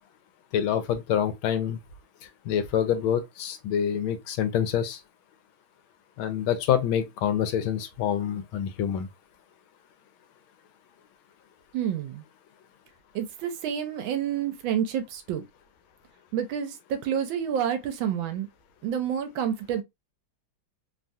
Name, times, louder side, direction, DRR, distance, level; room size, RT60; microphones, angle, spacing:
voice 1, 0.5-1.8 2.5-5.0 6.2-9.1, left 9 dB, 85° left, 1.4 m, -26 dB
voice 2, 11.7-12.2 13.1-15.4 16.3-18.5 18.8-19.8, right 9 dB, 75° right, 1.3 m, -29 dB
3.5 x 2.3 x 2.5 m
omnidirectional pair, 2.3 m